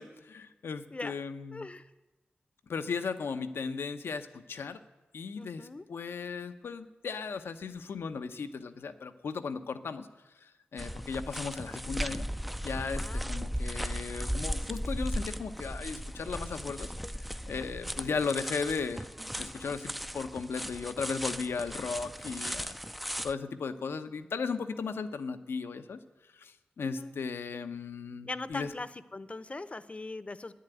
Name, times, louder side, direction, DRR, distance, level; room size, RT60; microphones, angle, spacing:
voice 1, 0.0-1.7 2.7-4.8 5.1-10.1 10.4-12.3 12.6-16.9 17.5-19.0 19.4-22.8 23.2-26.0 26.4-28.7, left 5 dB, 85° left, 8 dB, 0.8 m, -36 dB
voice 2, 1.5-1.8 5.4-5.8 12.7-13.4 18.1-18.2 21.7-21.8 26.8-27.1 28.2-30.5, left 2 dB, 35° left, 14 dB, 0.7 m, -41 dB
sound 1, 10.8-23.3, equal, ahead, 0.4 m, -37 dB
11.5 x 10.0 x 9.1 m, 1.1 s
cardioid pair, 60°, 4 cm